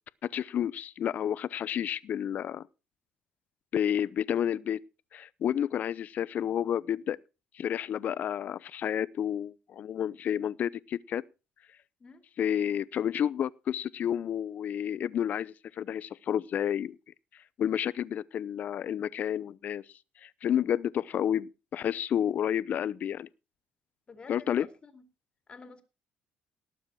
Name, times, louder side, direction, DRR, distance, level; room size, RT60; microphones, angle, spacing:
voice 1, 0.3-2.7 3.7-4.8 5.1-7.2 7.5-11.2 12.4-17.0 17.6-19.8 20.2-23.3 24.3-24.7, left 9 dB, 55° left, 0.7 m, -30 dB
voice 2, 24.1-25.0 25.5-25.8, left 4 dB, 30° left, 2.5 m, -50 dB
18.5 x 7.2 x 4.7 m
cardioid pair, 100°, 3 cm